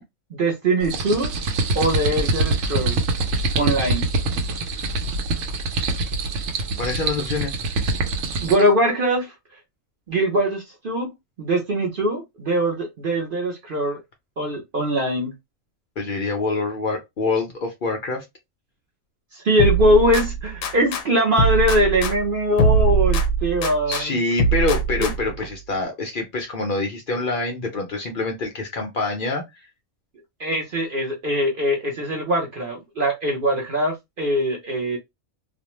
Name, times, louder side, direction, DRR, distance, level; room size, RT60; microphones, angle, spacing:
voice 1, 0.3-1.3 1.7-3.0 3.6-4.1 8.4-9.3 10.1-11.1 11.4-14.0 14.4-15.3 19.3-24.2 25.0-25.1 30.4-35.0, equal, 50° right, 0.7 m, -22 dB
sound 1, 0.8-8.7, right 2 dB, 70° right, 1.0 m, -24 dB
voice 2, 6.8-7.6 16.0-18.2 23.9-29.4, left 3 dB, 55° left, 0.5 m, -26 dB
sound 2, 19.6-21.0 21.4-24.0 24.4-25.4, right 3 dB, 80° left, 1.0 m, -22 dB
2.5 x 2.1 x 2.9 m
omnidirectional pair, 1.5 m